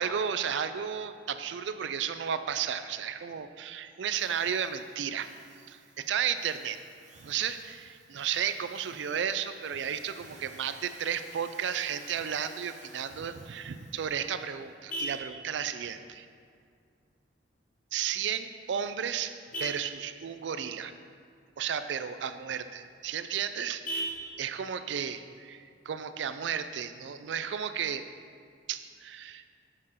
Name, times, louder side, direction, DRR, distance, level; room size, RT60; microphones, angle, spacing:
voice 1, 0.0-5.3 5.7-6.8 7.2-16.3 17.9-19.3 19.6-20.9 21.6-24.1 24.4-28.0 28.7-29.4, right 8 dB, 75° right, 11 dB, 0.4 m, -33 dB
Drill, 4.1-14.5, right 4 dB, 40° right, 0.8 m, -56 dB
Vehicle horn car horn honking, 13.6-26.6, right 1 dB, 50° left, 1.0 m, -44 dB
6.7 x 4.9 x 5.6 m, 2.3 s
head